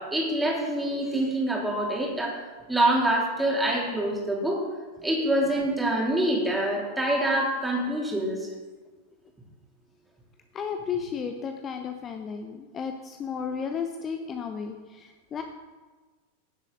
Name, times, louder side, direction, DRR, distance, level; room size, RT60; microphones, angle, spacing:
voice 1, 0.0-2.4 2.7-4.6 5.0-8.5, right 1 dB, 5° right, -3 dB, 3.1 m, -25 dB
voice 2, 10.5-15.4, left 6 dB, 25° left, 6 dB, 0.8 m, -33 dB
16.0 x 7.5 x 4.0 m, 1.3 s
figure-of-eight pair, 90°, 0 cm